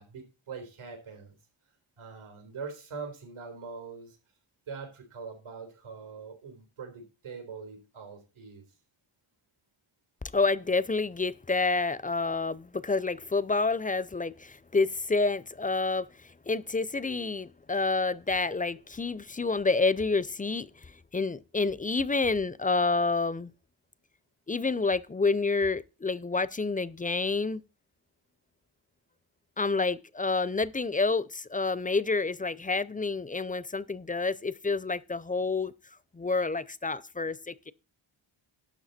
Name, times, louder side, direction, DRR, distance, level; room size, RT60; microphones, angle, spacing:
voice 1, 0.0-1.4 2.0-4.2 4.7-8.6, right 5 dB, 90° right, 4.0 m, -43 dB
voice 2, 10.3-23.5 24.5-27.6 29.6-35.7 36.1-37.7, left 3 dB, 15° left, 0.6 m, -28 dB
12.0 x 7.1 x 4.2 m
cardioid pair, 80°, 48 cm